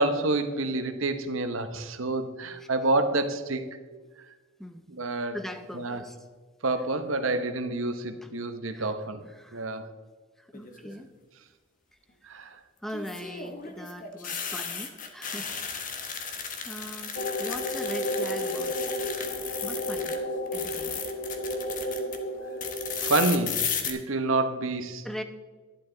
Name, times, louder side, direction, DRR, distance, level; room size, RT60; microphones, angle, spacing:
voice 1, 0.0-3.6 4.9-5.4 5.7-6.0 6.6-9.2 9.5-9.9 12.2-12.6 23.0-25.1, right 2 dB, 80° right, 9 dB, 0.9 m, -28 dB
voice 2, 5.3-6.2 8.2-8.3 8.7-8.9 9.3-9.7 10.4-11.1 12.8-15.5 15.8-16.1 16.6-18.7 19.6-20.2 20.5-21.1 25.0-25.2, equal, ahead, 8 dB, 0.6 m, -40 dB
sound 1, 10.5-11.0 12.9-20.2 20.5-22.2 22.6-23.9, left 6 dB, 40° left, 1.1 m, -35 dB
sound 2, 17.1-23.3, equal, 65° left, 1.6 m, -32 dB
11.5 x 10.5 x 3.9 m, 1.3 s
head